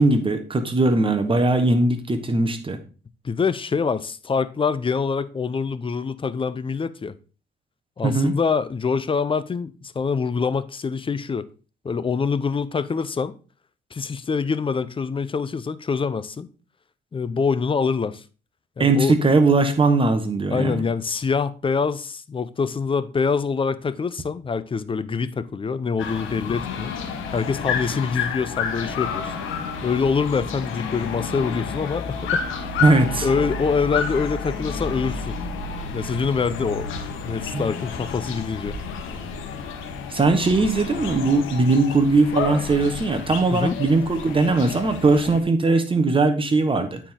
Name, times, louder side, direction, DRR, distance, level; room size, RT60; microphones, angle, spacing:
voice 1, 0.0-2.8 8.0-8.3 18.8-20.8 32.8-33.3 37.5-37.6 40.1-47.0, right 3 dB, 25° right, 1.2 m, -19 dB
voice 2, 3.2-7.1 8.0-11.5 11.8-13.4 13.9-16.5 17.1-18.2 18.8-19.2 20.5-26.9 27.3-29.3 29.8-32.6 33.2-35.4 35.9-36.9 37.2-38.8 43.5-43.8, left 5 dB, 25° left, 0.5 m, -25 dB
sound 1, 26.0-45.4, left 5 dB, 90° left, 1.2 m, -30 dB
8.8 x 4.5 x 3.7 m
cardioid pair, 90°, 20 cm